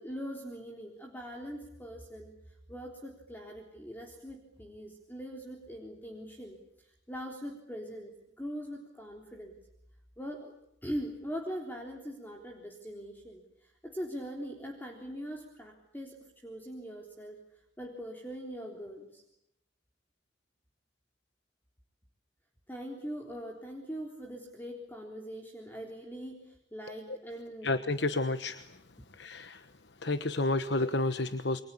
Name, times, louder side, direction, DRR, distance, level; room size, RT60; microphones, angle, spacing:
voice 1, 0.0-2.3 2.7-8.1 8.4-9.6 10.2-10.5 10.8-17.4 17.8-19.2 22.7-27.7, equal, 10° left, 1 dB, 3.6 m, -42 dB
voice 2, 27.6-28.8 29.1-29.7 30.0-31.6, left 2 dB, 60° left, 11 dB, 1.2 m, -30 dB
28.5 x 24.0 x 8.5 m, 0.80 s
head